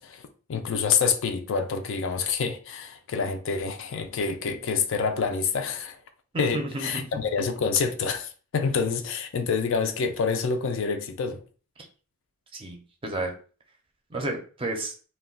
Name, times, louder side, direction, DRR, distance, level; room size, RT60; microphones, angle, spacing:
voice 1, 0.0-6.0 6.4-11.4, left 5 dB, 60° left, 0.4 m, -27 dB
voice 2, 6.3-7.1 11.8-11.9 12.5-13.3 14.1-14.9, right 2 dB, 25° right, 0.5 m, -32 dB
2.2 x 2.1 x 3.6 m
head